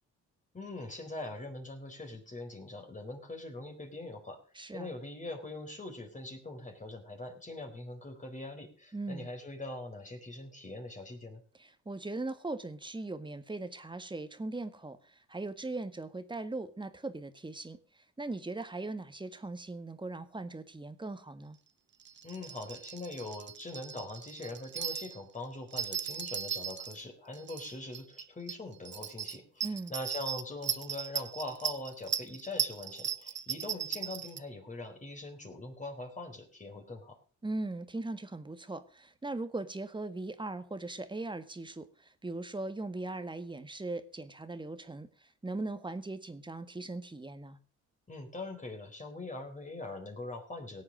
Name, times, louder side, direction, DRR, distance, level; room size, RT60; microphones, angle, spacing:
voice 1, 0.5-4.4 4.7-11.4 22.2-37.2 48.1-50.8, left 2 dB, 25° left, 3 dB, 4.3 m, -42 dB
voice 2, 4.6-4.9 8.9-9.3 11.6-21.6 29.6-29.9 37.4-47.6, right 2 dB, 15° right, 10 dB, 1.7 m, -39 dB
sound 1, 22.0-25.2 25.7-27.0 27.3-28.2 28.5-28.6 28.9-34.4, right 7 dB, 40° right, 0.9 m, -37 dB
17.5 x 8.5 x 6.5 m, 0.40 s
cardioid pair, 90°, 30 cm